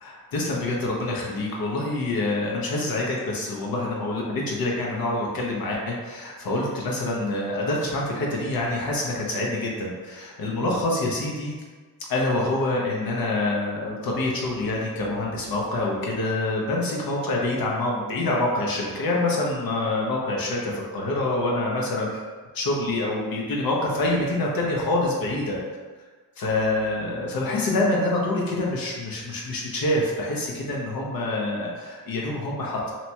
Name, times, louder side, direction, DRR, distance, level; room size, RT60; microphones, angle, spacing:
voice 1, 0.0-11.5 12.1-22.2 22.5-25.6 26.4-32.9, left 2 dB, 75° left, -3 dB, 0.7 m, -26 dB
2.8 x 2.2 x 2.7 m, 1.4 s
cardioid pair, 60°, 35 cm